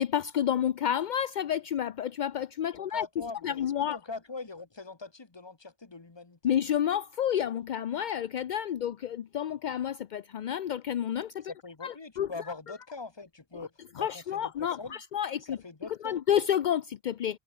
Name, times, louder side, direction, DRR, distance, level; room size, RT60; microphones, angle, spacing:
voice 1, 0.0-3.1 3.4-4.0 6.4-11.5 11.8-12.5 14.0-15.6 16.0-17.4, left 10 dB, 55° left, 0.5 m, -30 dB
voice 2, 2.9-6.5 11.4-15.0 15.4-16.2, left 3 dB, 20° left, 1.3 m, -42 dB
omnidirectional pair, 1.2 m